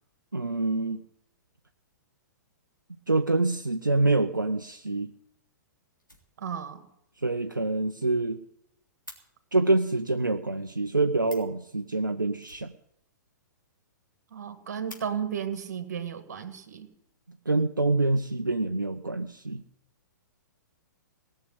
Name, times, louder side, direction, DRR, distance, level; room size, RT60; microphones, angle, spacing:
voice 1, 0.3-1.0 3.1-5.1 7.2-8.4 9.5-12.7 17.5-19.6, right 2 dB, 85° right, 5 dB, 0.7 m, -26 dB
Fire, 5.3-5.4 5.6-5.7 6.0-6.8 7.1-7.2 7.6-7.7 7.9-8.0 8.2-9.2 10.9-11.0 11.2-11.6 12.4-13.3 13.6-13.7 14.0-14.1 14.5-15.0 16.0-16.2 16.8-17.4, left 1 dB, 90° left, 3.3 m, -50 dB
voice 2, 6.4-6.8 14.3-16.9, right 8 dB, 55° right, 8 dB, 1.9 m, -34 dB
18.5 x 6.7 x 8.9 m, 0.77 s
figure-of-eight pair, 115°, 10 cm